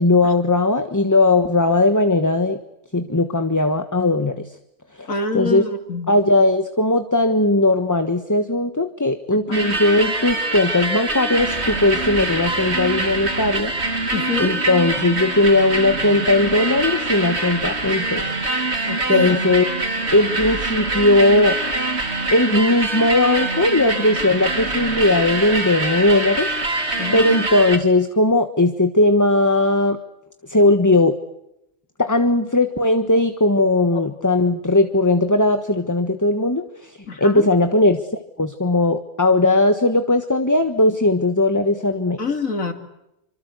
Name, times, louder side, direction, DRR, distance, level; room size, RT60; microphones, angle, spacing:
voice 1, 0.0-2.6 2.9-4.3 5.0-5.6 6.1-13.7 14.4-18.5 19.1-19.7 20.1-21.6 22.3-26.9 27.1-30.0 30.5-31.2 32.0-38.0 38.4-42.2, left 2 dB, 15° left, 8 dB, 1.3 m, -18 dB
voice 2, 5.1-6.1 9.5-9.6 14.1-14.5 18.8-19.4 27.0-27.4 37.1-37.5 42.2-42.7, left 4 dB, 80° left, 6 dB, 3.3 m, -25 dB
sound 1, 9.5-27.8, right 2 dB, 55° right, 2.9 m, -24 dB
28.0 x 25.5 x 8.3 m, 0.84 s
omnidirectional pair, 1.4 m